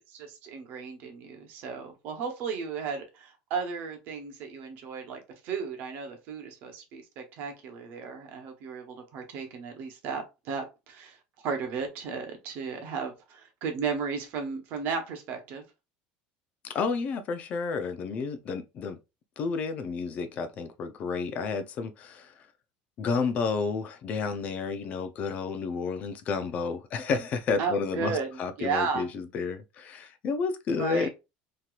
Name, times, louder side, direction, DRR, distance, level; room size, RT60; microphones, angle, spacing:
voice 1, 0.1-15.6 27.6-29.1 30.8-31.1, right 5 dB, 55° right, 1.0 m, -34 dB
voice 2, 16.6-19.0 19.4-22.3 23.0-31.1, left 4 dB, 40° left, 0.4 m, -31 dB
3.1 x 2.8 x 2.3 m
cardioid pair, 145°, 4 cm